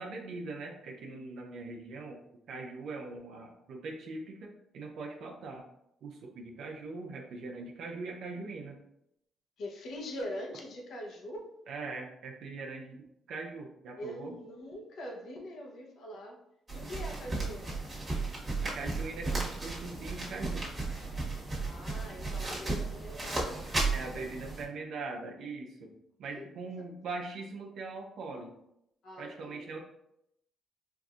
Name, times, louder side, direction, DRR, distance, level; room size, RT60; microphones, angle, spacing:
voice 1, 0.0-2.2 2.5-5.6 6.0-8.8 11.7-14.3 18.6-20.7 23.9-25.9 26.2-28.5 29.2-29.8, right 3 dB, 75° right, 1 dB, 0.5 m, -41 dB
voice 2, 9.6-11.5 14.0-16.4 16.7-17.8 21.6-23.6 23.9-24.2 26.3-26.5 29.0-29.7, left 1 dB, 70° left, 0 dB, 0.9 m, -43 dB
sound 1, 16.7-24.6, right 3 dB, 25° right, 1.4 m, -35 dB
4.6 x 2.6 x 2.4 m, 0.79 s
cardioid pair, 90°, 0 cm